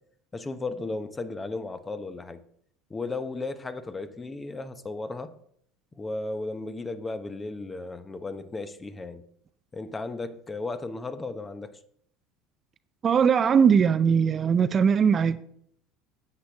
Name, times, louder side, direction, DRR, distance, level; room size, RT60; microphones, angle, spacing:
voice 1, 0.3-2.4 2.9-5.3 6.0-9.2 9.7-11.8, left 3 dB, 20° left, 0.8 m, -35 dB
voice 2, 13.0-15.4, right 7 dB, 35° right, 0.5 m, -20 dB
9.5 x 8.1 x 3.5 m
hypercardioid pair, 75°, 0 cm